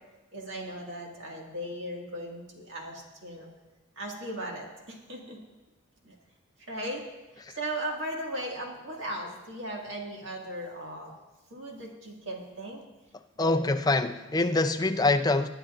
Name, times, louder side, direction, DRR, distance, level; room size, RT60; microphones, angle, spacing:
voice 1, 0.3-3.5 4.0-5.4 6.0-6.1 6.7-7.0 7.5-11.1 11.5-12.8 13.4-13.6, right 1 dB, 55° right, 2.0 m, -37 dB
voice 2, 13.4-15.5, left 2 dB, 15° left, 0.4 m, -25 dB
21.5 x 9.7 x 2.5 m
head